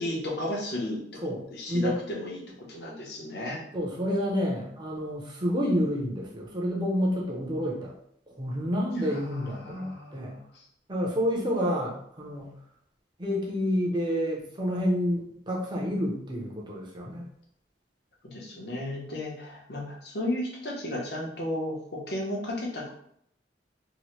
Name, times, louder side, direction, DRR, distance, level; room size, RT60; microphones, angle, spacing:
voice 1, 0.0-1.2 1.5-2.4 2.7-3.6 9.1-10.4 18.2-22.9, left 1 dB, 65° left, -2 dB, 0.8 m, -34 dB
voice 2, 1.2-2.0 3.7-7.9 8.3-10.4 10.9-12.5 13.2-17.3, equal, 25° right, -2 dB, 0.6 m, -29 dB
2.9 x 2.1 x 3.0 m, 0.69 s
head